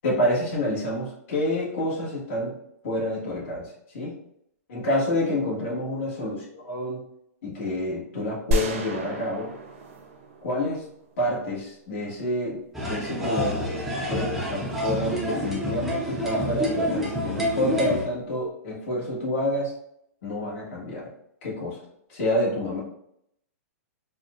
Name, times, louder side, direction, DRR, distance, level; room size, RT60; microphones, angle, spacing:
voice 1, 0.0-2.5 2.8-4.1 4.7-7.0 7.4-9.5 10.4-10.9 11.2-13.7 14.1-19.7 20.2-21.1 21.4-21.8 22.1-22.8, left 1 dB, 50° left, -5 dB, 1.4 m, -28 dB
sound 1, 8.5-11.4, right 1 dB, 55° right, 0.6 m, -31 dB
sound 2, 12.7-18.1, equal, ahead, 0.5 m, -28 dB
4.1 x 2.2 x 2.5 m, 0.74 s
hypercardioid pair, 160°, 8 cm